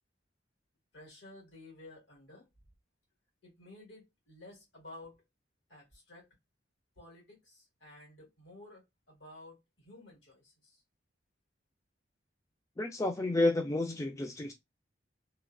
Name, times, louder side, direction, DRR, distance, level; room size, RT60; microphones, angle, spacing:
voice 1, 0.9-2.5 3.4-5.2 5.7-6.3 7.0-10.8, left 2 dB, 80° left, 1.9 m, -53 dB
voice 2, 12.8-14.5, left 2 dB, 15° left, 0.3 m, -30 dB
3.0 x 2.2 x 2.4 m
head